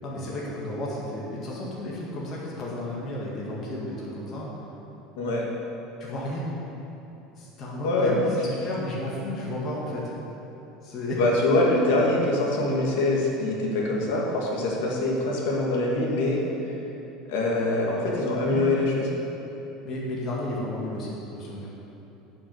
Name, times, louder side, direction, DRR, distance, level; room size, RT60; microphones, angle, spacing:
voice 1, 0.0-4.5 6.0-6.5 7.3-10.1 10.8-11.2 18.4-18.7 19.8-21.7, left 1 dB, 30° left, -5 dB, 1.9 m, -33 dB
voice 2, 7.8-8.2 11.2-16.4 17.3-19.1, left 2 dB, 75° left, -2 dB, 2.3 m, -24 dB
11.0 x 6.3 x 8.1 m, 3.0 s
cardioid pair, 180°, 0 cm